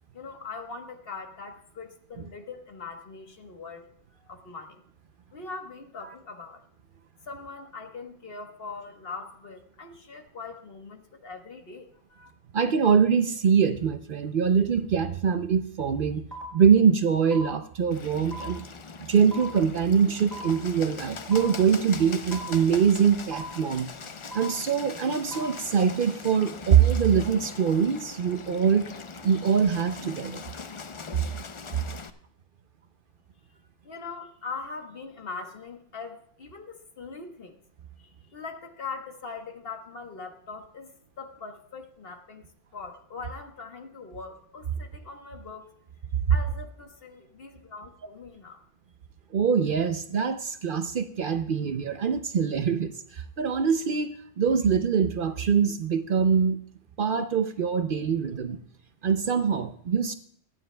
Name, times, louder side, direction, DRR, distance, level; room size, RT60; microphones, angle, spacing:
voice 1, 0.1-3.9 4.1-4.8 5.3-6.6 7.2-12.3 33.8-37.6 38.0-42.4 42.7-45.7 46.3-48.6, left 4 dB, 55° left, 5 dB, 1.4 m, -41 dB
voice 2, 12.5-16.2 16.5-18.6 19.1-23.9 24.3-28.9 29.2-30.4 49.3-56.6 57.0-58.6 59.0-60.1, right 7 dB, 55° right, 9 dB, 0.7 m, -23 dB
sound 1, 16.3-16.4 17.3-17.4 18.3-18.4 19.3-19.4 20.3-20.4 21.3-21.4 22.3-22.4 23.3-23.4 24.3-24.4 25.3-25.4, right 3 dB, ahead, 4.7 m, -38 dB
Bird, 17.9-32.1, left 5 dB, 40° left, 0.5 m, -41 dB
23.0 x 9.2 x 2.2 m, 0.65 s
omnidirectional pair, 1.2 m